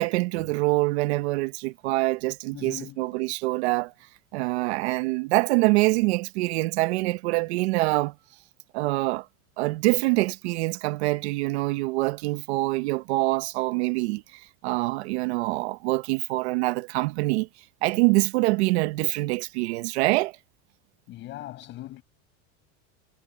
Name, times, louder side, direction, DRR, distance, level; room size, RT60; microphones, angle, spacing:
voice 1, 0.0-3.9 4.3-8.1 8.7-9.3 9.6-17.5 17.8-20.3, right 22 dB, 70° right, 1.0 m, -25 dB
voice 2, 2.5-3.2 21.1-22.0, left 15 dB, 35° left, 6.7 m, -40 dB
cardioid pair, 180°, 34 cm